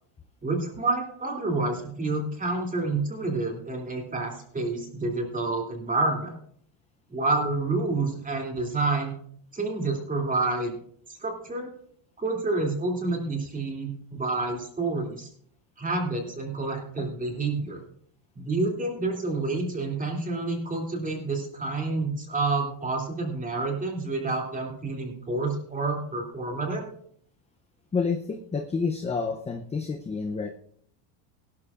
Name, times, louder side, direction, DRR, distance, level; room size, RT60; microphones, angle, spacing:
voice 1, 0.4-6.3 7.1-9.1 9.5-10.8 11.1-11.7 12.2-15.3 15.8-17.8 18.3-26.9, right 3 dB, 15° right, 1 dB, 2.8 m, -28 dB
voice 2, 27.9-30.5, left 5 dB, 15° left, 5 dB, 0.6 m, -29 dB
18.0 x 11.5 x 2.5 m, 0.63 s
cardioid pair, 135°, 49 cm